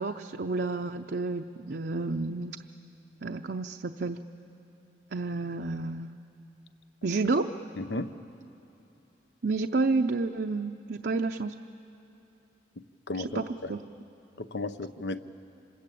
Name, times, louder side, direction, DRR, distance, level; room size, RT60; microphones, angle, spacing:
voice 1, 0.0-2.6 3.2-4.2 5.1-6.1 7.0-7.5 9.4-11.5 13.1-13.9, right 3 dB, 65° right, 4 dB, 0.6 m, -30 dB
voice 2, 7.8-8.1 13.1-13.7 14.4-15.2, left 2 dB, 85° left, 11 dB, 0.8 m, -34 dB
26.5 x 21.0 x 8.5 m, 3.0 s
head